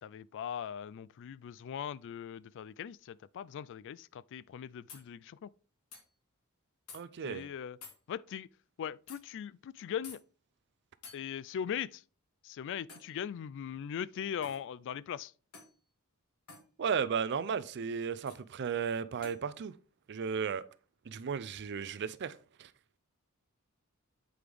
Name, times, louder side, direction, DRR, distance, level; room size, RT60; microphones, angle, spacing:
voice 1, 0.0-5.5 7.2-7.8 8.1-8.5 8.8-10.2 11.1-12.0 12.4-15.3, left 8 dB, 55° left, 0.3 m, -40 dB
sound 1, 4.9-5.1 5.9-6.0 6.9-7.0 7.8-8.0 9.1-9.2 10.0-10.2 11.0-11.2 12.9-13.1 14.4-14.6 15.5-15.8 16.5-16.7 18.3-18.4 19.2-19.4, left 4 dB, 80° left, 1.8 m, -50 dB
voice 2, 6.9-7.4 16.8-19.7 20.1-20.6 21.1-22.7, right 6 dB, 50° right, 0.4 m, -34 dB
7.9 x 4.8 x 3.4 m
head